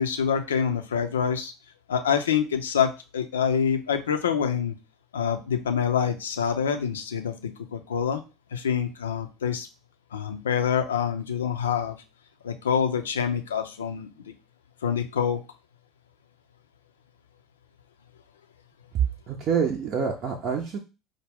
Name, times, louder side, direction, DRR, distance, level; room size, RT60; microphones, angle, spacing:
voice 1, 0.0-1.5 1.9-4.7 5.1-8.2 8.5-9.7 10.1-12.0 12.4-14.1 14.8-15.4, left 7 dB, 75° left, 7 dB, 0.5 m, -26 dB
voice 2, 18.9-20.8, right 7 dB, 45° right, 2 dB, 0.6 m, -26 dB
4.9 x 2.1 x 3.4 m, 0.30 s
figure-of-eight pair, 65°, 0 cm